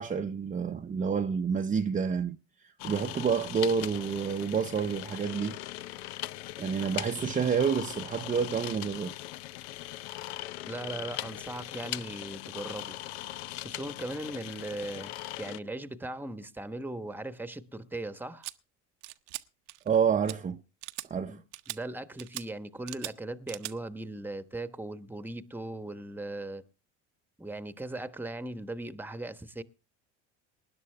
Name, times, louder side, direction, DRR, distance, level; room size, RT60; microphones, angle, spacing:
voice 1, 0.0-2.4 2.8-5.6 6.6-9.1 19.9-20.6 21.1-21.4, right 6 dB, 20° right, 0.7 m, -28 dB
sound 1, 2.8-15.6, left 16 dB, 75° left, 0.6 m, -40 dB
voice 2, 10.6-13.0 13.6-18.5 21.2-21.4 21.7-26.6 27.4-29.6, right 2 dB, 5° right, 1.1 m, -38 dB
sound 2, 18.4-18.5 19.0-19.4 19.7-20.0 20.3-20.4 20.8-21.1 21.5-21.8 22.2-22.5 22.9-23.1 23.5-23.7, right 21 dB, 75° right, 0.9 m, -39 dB
20.0 x 10.5 x 3.4 m
supercardioid pair, 90°, 35 cm